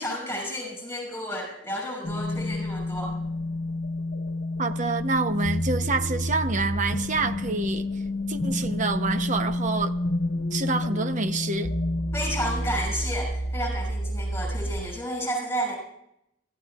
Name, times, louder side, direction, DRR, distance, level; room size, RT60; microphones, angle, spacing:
voice 1, 0.0-3.1 12.1-15.8, equal, 15° left, 6.1 m, -31 dB
sound 1, 2.0-14.9, left 1 dB, 70° left, 1.3 m, -29 dB
voice 2, 4.6-7.8 8.3-9.9 10.5-11.7, right 3 dB, 40° right, 0.8 m, -27 dB
26.0 x 15.0 x 2.4 m
head